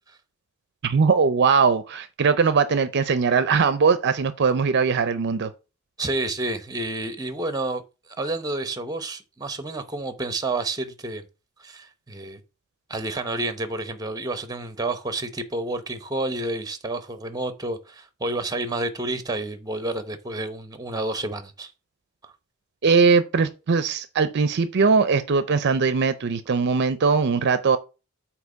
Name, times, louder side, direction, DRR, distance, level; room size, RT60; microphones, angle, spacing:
voice 1, 0.8-5.5 22.8-27.8, right 5 dB, 55° right, 0.5 m, -20 dB
voice 2, 6.0-7.8 8.2-11.2 11.6-12.4 12.9-21.7 22.2-22.3, right 2 dB, 15° right, 0.8 m, -29 dB
8.0 x 3.0 x 5.1 m
head